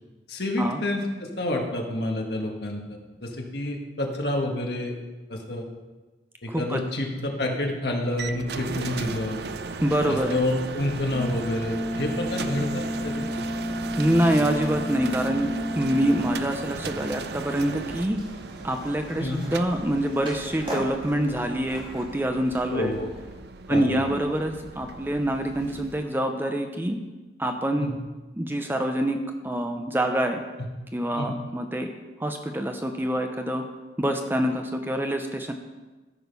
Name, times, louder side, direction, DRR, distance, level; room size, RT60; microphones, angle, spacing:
voice 1, 0.3-4.9 5.3-5.6 6.4-9.4 10.1-13.2 19.2-19.4 22.7-23.1 23.7-24.1 27.8-27.9 31.1-31.3, left 1 dB, 60° left, 1 dB, 1.7 m, -29 dB
voice 2, 6.5-6.8 9.8-10.4 14.0-15.5 15.8-18.2 18.6-22.9 23.7-27.0 27.4-27.9 28.3-29.2 29.4-30.4 30.9-31.9 32.2-33.6 34.0-35.5, right 1 dB, 10° right, 5 dB, 0.7 m, -26 dB
sound 1, 8.2-26.0, right 4 dB, 60° right, 0.5 m, -37 dB
sound 2, 11.1-16.3, left 1 dB, 5° left, 2.6 m, -31 dB
Skateboard, 18.1-23.4, equal, 30° right, 2.3 m, -40 dB
13.5 x 6.5 x 5.4 m, 1.2 s
head